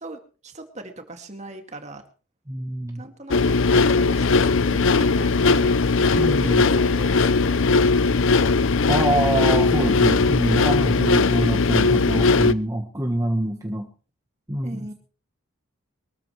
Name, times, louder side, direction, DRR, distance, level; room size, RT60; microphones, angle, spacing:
voice 1, 0.0-2.0 2.9-5.8 6.1-7.7 14.6-14.9, right 2 dB, 30° right, 5 dB, 2.2 m, -40 dB
voice 2, 2.5-3.1 6.1-6.7 8.9-13.9 14.5-14.9, right 1 dB, 15° right, 3 dB, 1.3 m, -25 dB
sound 1, 3.3-12.5, left 4 dB, 60° left, 0.6 m, -19 dB
23.0 x 14.0 x 3.2 m, 0.37 s
head